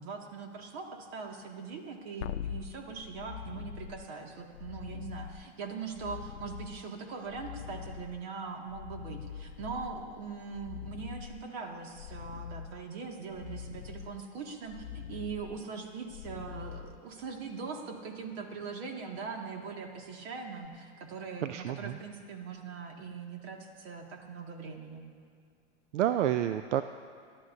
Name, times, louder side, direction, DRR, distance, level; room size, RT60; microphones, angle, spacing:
voice 1, 0.0-25.0, right 5 dB, 60° right, 2 dB, 2.2 m, -41 dB
sound 1, 2.2-17.5 20.6-20.7, left 9 dB, 80° left, 0.6 m, -44 dB
voice 2, 21.4-22.0 25.9-26.8, right 11 dB, 90° right, 10 dB, 0.5 m, -29 dB
23.5 x 11.5 x 2.7 m, 2.2 s
hypercardioid pair, 120°, 35 cm